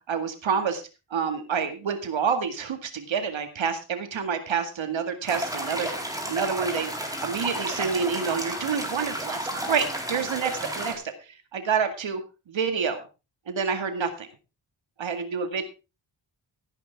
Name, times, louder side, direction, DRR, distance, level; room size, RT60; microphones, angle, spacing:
voice 1, 0.1-0.8 1.1-5.9 6.3-6.9 7.2-12.2 12.5-13.0 13.5-14.3 15.0-15.6, right 6 dB, 80° right, 8 dB, 2.0 m, -28 dB
sound 1, 5.3-10.9, right 1 dB, 10° right, 4.2 m, -32 dB
15.5 x 10.0 x 3.5 m, 0.30 s
cardioid pair, 85°, 46 cm